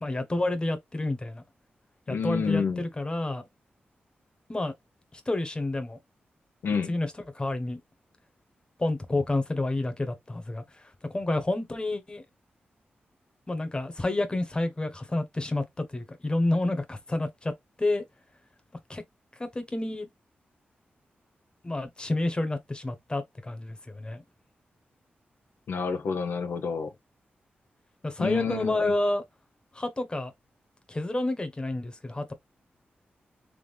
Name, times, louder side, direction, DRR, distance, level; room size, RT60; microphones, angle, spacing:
voice 1, 0.0-1.4 2.1-3.5 4.5-4.7 5.1-6.0 6.9-7.1 7.3-7.8 8.8-12.2 13.5-17.5 17.8-18.0 18.9-19.0 19.4-20.1 21.6-24.2 28.0-29.2 29.7-30.3 30.9-32.3, left 2 dB, 25° left, 1.2 m, -29 dB
voice 2, 2.1-2.8 6.6-6.9 25.7-26.9 28.2-28.9, left 5 dB, 80° left, 0.7 m, -29 dB
3.7 x 3.4 x 3.3 m
cardioid pair, 70°, 4 cm